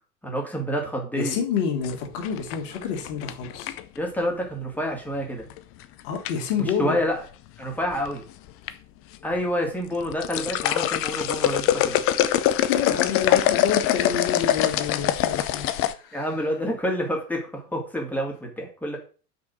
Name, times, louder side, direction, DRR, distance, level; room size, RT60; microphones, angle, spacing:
voice 1, 0.2-1.4 3.9-5.4 6.6-7.2 7.6-8.2 9.2-12.0 16.1-19.0, equal, 5° left, 0 dB, 2.7 m, -28 dB
voice 2, 1.2-3.7 6.0-7.0 12.7-16.3, left 7 dB, 50° left, 0 dB, 2.6 m, -28 dB
sound 1, 1.8-4.0 5.5-5.8 6.2-6.7 7.6-8.2 8.5-8.7 9.1-9.2 9.9-15.9, left 12 dB, 30° left, 0.7 m, -24 dB
6.0 x 5.5 x 6.2 m, 0.38 s
figure-of-eight pair, 85°, 47 cm